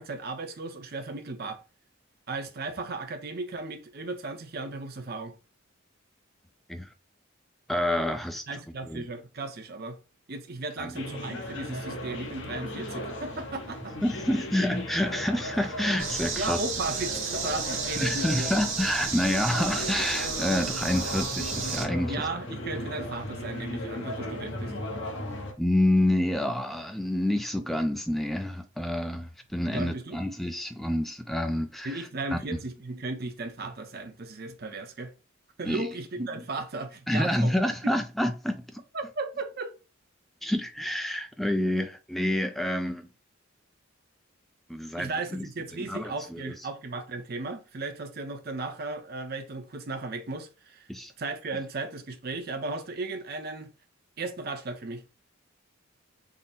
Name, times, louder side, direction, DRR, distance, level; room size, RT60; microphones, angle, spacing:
voice 1, 0.0-1.6 2.3-5.3 8.5-10.0 10.3-14.0 16.4-18.5 22.1-24.9 29.7-30.2 31.8-35.1 35.6-37.5 38.9-39.7 45.0-50.9 51.2-53.7 54.2-55.0, right 3 dB, 45° right, 0.6 m, -35 dB
voice 2, 7.7-8.4 8.8-9.1 10.8-11.0 14.0-16.6 18.0-22.3 25.6-32.6 35.6-35.9 37.1-38.8 40.4-43.1 44.7-45.5 45.9-46.5 50.9-51.1, left 1 dB, ahead, 0.3 m, -28 dB
sound 1, 10.9-25.5, left 1 dB, 55° left, 0.8 m, -36 dB
sound 2, 16.0-21.9, right 5 dB, 65° right, 1.0 m, -33 dB
3.7 x 2.0 x 4.0 m
head